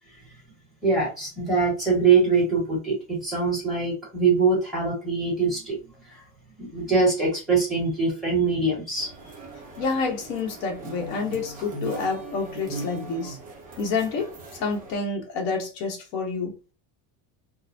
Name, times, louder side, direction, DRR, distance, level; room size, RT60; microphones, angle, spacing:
voice 1, 0.8-5.8 6.1-6.2 6.6-9.1, right 4 dB, ahead, 1.5 m, -23 dB
sound 1, 9.0-14.9, right 2 dB, 20° right, 0.6 m, -39 dB
voice 2, 9.8-13.4 13.8-16.6, left 4 dB, 90° left, 1.2 m, -28 dB
3.8 x 2.1 x 2.7 m
cardioid pair, 175°, 45 cm